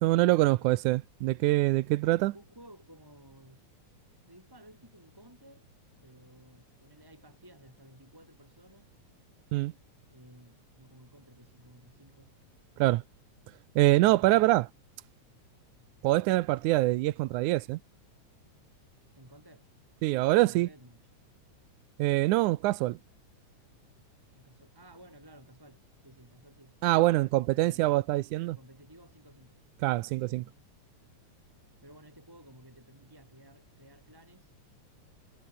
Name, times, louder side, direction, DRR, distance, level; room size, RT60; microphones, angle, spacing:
voice 1, 0.0-2.3 9.5-9.7 12.8-13.0 13.8-14.7 16.0-17.8 20.0-20.7 22.0-23.0 26.8-28.6 29.8-30.4, right 18 dB, 85° right, 2.1 m, -24 dB
voice 2, 2.0-3.7 4.2-5.7 6.0-8.9 10.1-12.3 19.1-19.7 20.4-21.0 24.3-26.8 28.5-29.6 30.1-30.7 31.8-34.5, right 1 dB, 5° right, 5.8 m, -55 dB
omnidirectional pair, 3.5 m